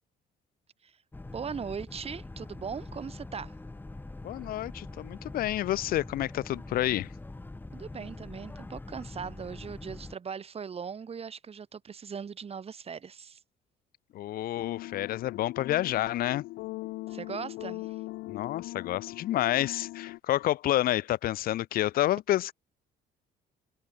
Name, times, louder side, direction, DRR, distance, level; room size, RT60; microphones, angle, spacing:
Boat Water vehicle, 1.1-10.1, left 2 dB, 10° left, 1.6 m, -44 dB
voice 1, 1.3-3.5 7.7-13.4 17.1-18.0, right 6 dB, 35° right, 4.5 m, -39 dB
voice 2, 4.2-7.1 14.1-16.5 18.3-22.5, left 14 dB, 60° left, 0.6 m, -29 dB
sound 1, 14.6-20.2, left 19 dB, 85° left, 1.1 m, -40 dB
cardioid pair, 110°, 17 cm